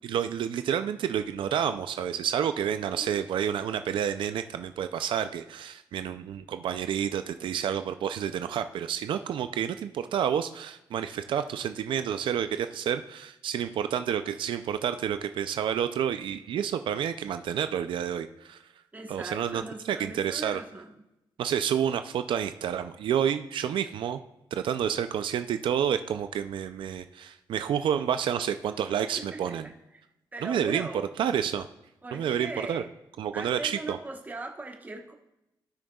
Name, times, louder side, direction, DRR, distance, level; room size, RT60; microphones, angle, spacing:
voice 1, 0.1-18.6 19.1-20.6 21.4-24.2 24.5-29.7 30.4-30.9 31.2-31.7 32.1-32.8 33.2-34.0, right 9 dB, 85° right, 9 dB, 0.4 m, -29 dB
voice 2, 2.9-3.2 18.9-21.0 29.2-29.7 30.3-31.1 32.0-32.9 33.3-35.1, right 2 dB, 20° right, 2 dB, 1.1 m, -39 dB
16.5 x 6.3 x 2.3 m, 0.90 s
cardioid pair, 110°, 8 cm